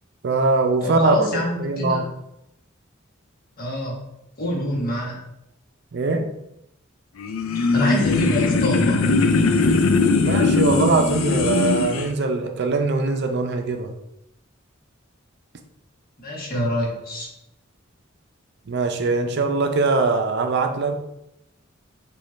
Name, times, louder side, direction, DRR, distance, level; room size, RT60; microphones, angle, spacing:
voice 1, 0.2-2.0 5.9-6.2 10.2-13.9 18.7-21.0, right 3 dB, 55° right, 5 dB, 0.5 m, -22 dB
voice 2, 0.8-2.0 3.6-4.0 4.4-5.2 7.5-9.0 16.2-17.3, left 1 dB, 45° left, -2 dB, 1.2 m, -26 dB
sound 1, 7.2-12.1, left 3 dB, 80° left, 0.4 m, -20 dB
5.0 x 2.4 x 4.2 m, 0.82 s
head